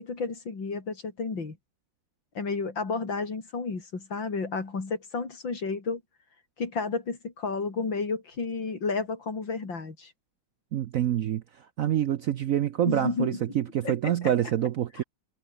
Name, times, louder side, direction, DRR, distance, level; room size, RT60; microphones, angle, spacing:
voice 1, 0.0-1.6 2.3-6.0 6.6-10.1 12.9-13.4 13.8-14.1, left 4 dB, 80° left, 4.4 m, -31 dB
voice 2, 10.7-15.0, right 11 dB, 65° right, 0.8 m, -27 dB
omnidirectional pair, 2.1 m